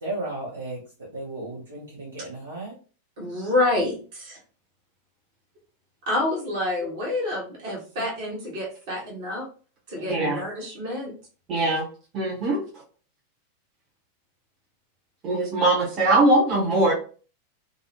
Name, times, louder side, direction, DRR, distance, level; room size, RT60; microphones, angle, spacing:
voice 1, 0.0-0.8 1.1-2.7 10.0-10.3, right 2 dB, 75° right, -5 dB, 0.9 m, -34 dB
voice 2, 3.2-4.4 6.1-9.5 9.9-11.1, left 2 dB, 50° right, -2 dB, 1.1 m, -28 dB
voice 3, 10.1-10.4 11.5-11.9 12.1-12.6 15.2-16.9, right 2 dB, 30° right, -5 dB, 0.8 m, -21 dB
2.5 x 2.0 x 2.8 m, 0.38 s
figure-of-eight pair, 90°, 0 cm